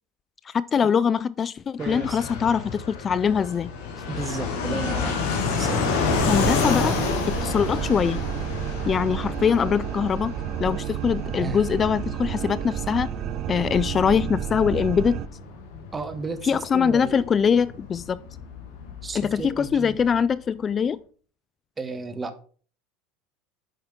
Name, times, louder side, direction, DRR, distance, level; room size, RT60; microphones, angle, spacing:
voice 1, 0.5-3.7 6.3-7.0 7.3-8.2 8.9-13.1 13.5-15.2 16.4-18.2 19.1-21.0, left 7 dB, 35° left, 0.3 m, -23 dB
Fixed-wing aircraft airplane, 1.8-20.2, left 5 dB, 60° left, 2.2 m, -30 dB
voice 2, 1.8-2.2 4.1-5.2 5.6-5.8 11.4-11.6 15.9-17.6 19.0-20.0 21.8-22.4, right 3 dB, 25° right, 1.2 m, -33 dB
sound 1, 6.1-15.3, right 10 dB, 50° right, 0.6 m, -31 dB
9.1 x 5.6 x 3.6 m
hypercardioid pair, 85°, 0 cm